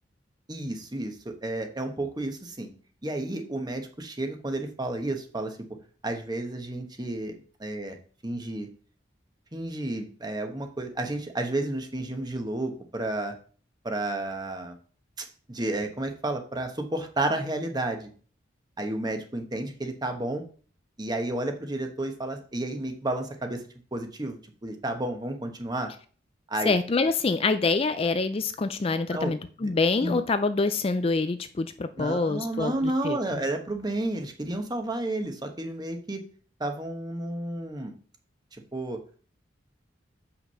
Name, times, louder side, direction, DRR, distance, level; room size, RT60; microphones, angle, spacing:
voice 1, 0.5-2.7 3.0-5.6 6.0-8.0 8.2-8.7 9.5-13.3 13.8-14.8 15.2-18.1 18.8-20.4 21.0-23.6 23.9-25.9 26.5-26.7 29.1-29.3 29.6-29.7 30.0-30.2 32.0-36.2 36.6-37.9 38.5-39.0, right 1 dB, 20° right, 5 dB, 1.2 m, -31 dB
voice 2, 26.7-32.7 33.0-33.2, left 3 dB, 30° left, 10 dB, 0.4 m, -26 dB
7.4 x 5.8 x 5.5 m, 0.42 s
head